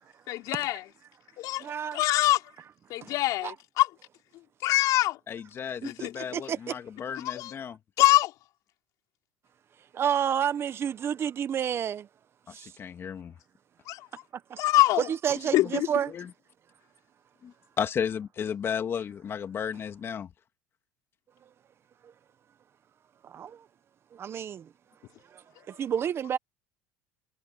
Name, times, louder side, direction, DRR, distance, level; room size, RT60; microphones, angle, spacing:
voice 1, 0.3-0.8 1.4-1.7 1.9-2.4 2.9-3.9 4.6-5.2 5.8-6.1 7.2-7.5 8.0-8.3 13.9-14.1 14.6-15.1 15.5-15.9, left 16 dB, 60° left, 4.3 m, -24 dB
voice 2, 1.6-2.0 3.0-3.1 3.4-3.5 5.8-6.8 9.9-12.1 12.5-12.7 14.3-14.6 15.0-16.1 22.0-22.1 23.2-23.6 24.1-24.7 25.3-26.4, right 9 dB, 40° right, 1.4 m, -30 dB
voice 3, 5.3-7.8 12.6-13.3 15.5-15.7 16.1-16.3 17.4-20.3, left 7 dB, 40° left, 2.2 m, -34 dB
supercardioid pair, 95°, 7 cm